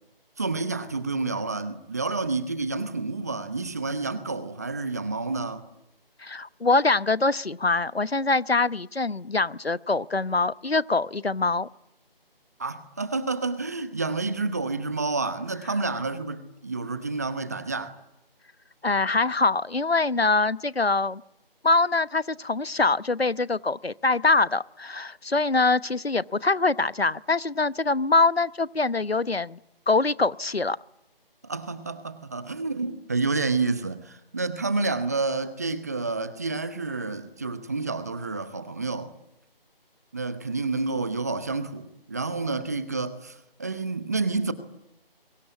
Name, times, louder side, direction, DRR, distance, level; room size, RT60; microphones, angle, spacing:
voice 1, 0.4-5.6 12.6-18.0 31.4-39.1 40.1-44.5, right 3 dB, 15° right, 1.0 m, -29 dB
voice 2, 6.2-11.7 18.8-21.2 21.6-29.6 29.9-30.8, left 3 dB, 85° left, 1.0 m, -24 dB
29.5 x 23.5 x 8.5 m
figure-of-eight pair, 160°, 30 cm